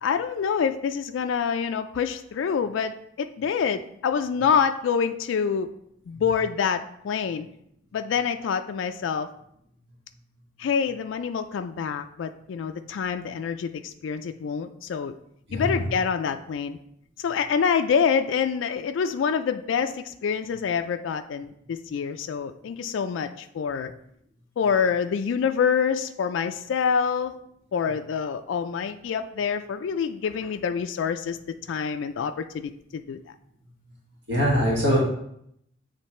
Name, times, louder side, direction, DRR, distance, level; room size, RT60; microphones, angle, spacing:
voice 1, 0.0-5.7 6.1-7.5 7.9-9.3 10.6-15.1 15.5-16.8 17.2-23.9 24.6-27.3 27.7-31.4 31.7-33.2, left 6 dB, 75° left, 8 dB, 0.3 m, -26 dB
voice 2, 15.5-15.8 34.3-35.0, equal, 70° right, -5 dB, 1.6 m, -22 dB
8.2 x 3.2 x 4.3 m, 0.73 s
head